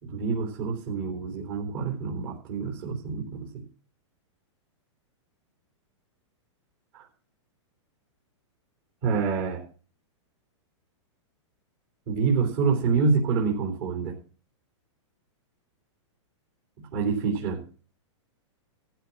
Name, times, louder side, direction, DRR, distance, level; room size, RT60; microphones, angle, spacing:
voice 1, 0.0-3.6 6.9-7.1 9.0-9.7 12.1-14.2 16.9-17.6, right 5 dB, 45° right, 0 dB, 4.1 m, -27 dB
15.0 x 5.6 x 7.4 m, 0.38 s
supercardioid pair, 160°, 16 cm